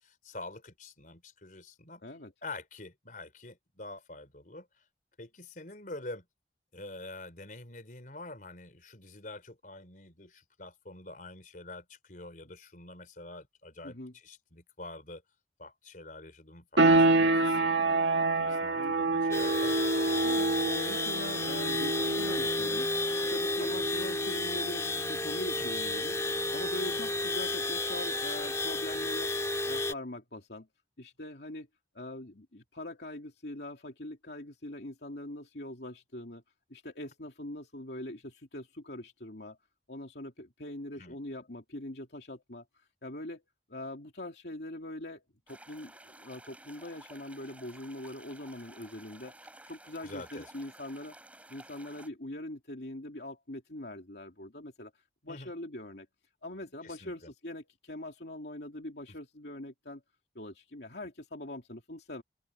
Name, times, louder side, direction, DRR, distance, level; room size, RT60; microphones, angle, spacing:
voice 1, 0.0-2.0 2.4-4.8 5.2-6.3 6.7-14.0 14.2-15.2 15.6-18.0 18.4-19.9 23.6-23.9 25.6-25.7 41.0-41.2 50.0-50.5 55.3-55.5 56.8-57.3 59.1-59.2, left 2 dB, 50° left, 4.3 m, -46 dB
voice 2, 2.0-2.3 13.8-14.1 18.7-19.2 20.1-26.2 26.5-29.4 29.6-30.7 31.0-31.7 31.9-36.4 36.7-39.6 39.9-43.4 43.7-49.4 49.6-51.1 51.5-54.9 55.2-56.1 56.4-60.0 60.3-62.2, left 1 dB, 65° left, 2.7 m, -42 dB
sound 1, 16.8-27.3, right 2 dB, 85° right, 2.0 m, -29 dB
sound 2, 19.3-29.9, left 2 dB, 15° left, 2.4 m, -32 dB
sound 3, 45.5-52.1, right 1 dB, 10° right, 4.7 m, -53 dB
head